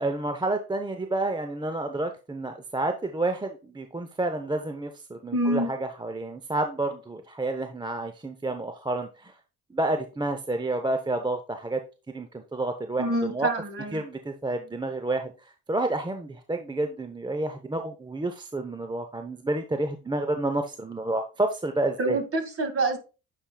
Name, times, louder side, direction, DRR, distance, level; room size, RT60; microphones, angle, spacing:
voice 1, 0.0-9.3 9.7-11.8 12.1-13.5 13.9-22.2, right 2 dB, 10° right, 0.6 m, -30 dB
voice 2, 5.3-5.7 13.0-14.0 22.0-23.0, right 2 dB, 35° right, 1.8 m, -26 dB
8.7 x 4.8 x 2.2 m
hypercardioid pair, 60°, 38 cm